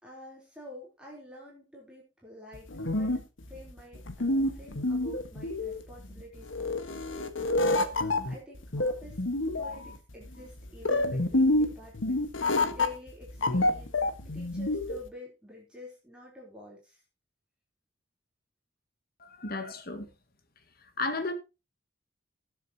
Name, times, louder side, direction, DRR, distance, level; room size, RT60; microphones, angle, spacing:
voice 1, 0.0-3.2 3.5-7.0 8.2-9.2 9.5-12.2 12.7-14.0 14.3-17.0, left 2 dB, 5° right, 3.8 m, -48 dB
sound 1, 2.5-15.1, left 2 dB, 80° left, 1.5 m, -28 dB
voice 2, 19.2-20.1 21.0-21.3, left 3 dB, 50° left, 1.7 m, -33 dB
19.5 x 7.5 x 2.9 m
head